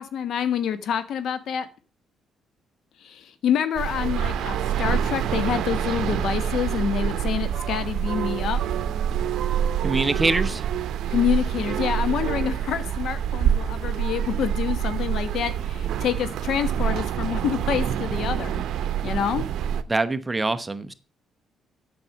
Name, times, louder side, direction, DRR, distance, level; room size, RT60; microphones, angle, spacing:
voice 1, 0.0-1.7 3.0-8.6 11.1-18.6 19.0-19.4, left 8 dB, 70° left, 1.2 m, -27 dB
sound 1, 3.7-19.8, right 9 dB, 75° right, 0.8 m, -26 dB
voice 2, 9.8-10.6 19.9-20.9, right 2 dB, 20° right, 0.9 m, -24 dB
8.8 x 6.9 x 7.2 m
cardioid pair, 90°, 0 cm